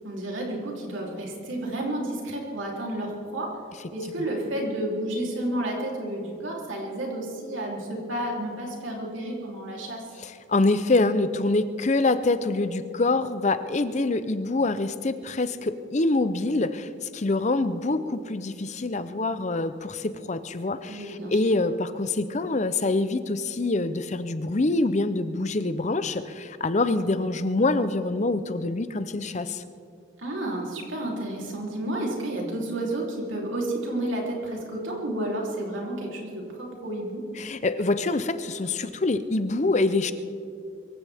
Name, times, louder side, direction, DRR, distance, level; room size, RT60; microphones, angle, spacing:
voice 1, 0.0-3.5 3.9-10.0 20.9-21.4 30.2-37.2, right 1 dB, 85° right, -2 dB, 3.3 m, -31 dB
voice 2, 10.2-29.6 37.4-40.1, left 2 dB, 35° left, 12 dB, 0.6 m, -25 dB
24.0 x 15.5 x 3.5 m, 2.5 s
head